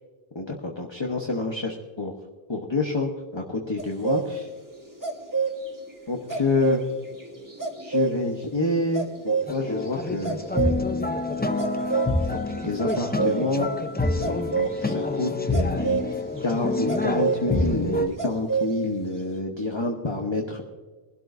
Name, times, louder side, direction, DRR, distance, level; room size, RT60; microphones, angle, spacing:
voice 1, 0.3-2.1 2.5-4.5 6.1-6.8 7.8-10.4 12.3-12.4 12.6-13.7 14.2-16.0 16.4-20.6, left 2 dB, 30° left, 2 dB, 1.1 m, -28 dB
sound 1, 3.8-13.4 14.2-18.7 19.0-19.2, right 5 dB, 20° right, 1.4 m, -29 dB
sound 2, 9.5-18.1, left 2 dB, 10° left, 0.5 m, -27 dB
21.0 x 12.0 x 2.6 m, 1.4 s
omnidirectional pair, 1.0 m